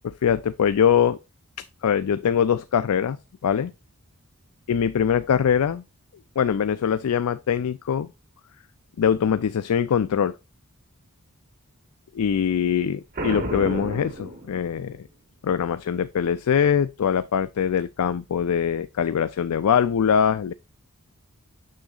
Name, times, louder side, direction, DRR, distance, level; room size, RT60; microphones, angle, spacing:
voice 1, 0.0-1.2 1.8-3.2 3.4-3.7 4.7-5.8 6.4-8.1 9.0-10.3 12.1-15.1 15.4-20.5, left 8 dB, 85° left, 0.4 m, -22 dB
Boom, 13.1-15.0, right 1 dB, 40° right, 1.0 m, -31 dB
7.3 x 6.5 x 2.4 m
head